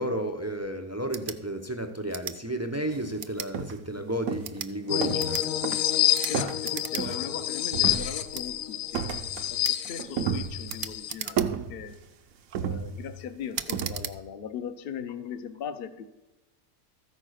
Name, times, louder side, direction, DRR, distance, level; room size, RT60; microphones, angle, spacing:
voice 1, 0.0-5.5, right 1 dB, 20° right, 6 dB, 0.4 m, -32 dB
sound 1, 1.1-1.4 2.1-2.4 3.2-3.5 4.3-4.7 5.2-5.5 6.1-6.3 6.6-7.1 7.4-7.5 8.3-8.5 9.6-9.8 10.7-11.7 12.3-12.6 13.5-14.2, right 9 dB, 85° right, 0.4 m, -37 dB
sound 2, 2.9-3.1 3.5-3.9 4.3-5.4 5.6-5.9 6.3-7.4 7.7-8.4 8.9-9.5 9.8-10.9 11.4-12.1 12.5-13.3 13.7-14.1, right 7 dB, 70° right, 1.1 m, -32 dB
sound 3, 4.9-11.1, left 12 dB, 70° left, 1.0 m, -28 dB
voice 2, 6.3-11.9 12.6-16.1, left 7 dB, 50° left, 11 dB, 0.8 m, -39 dB
14.0 x 4.9 x 6.4 m, 1.1 s
omnidirectional pair, 1.6 m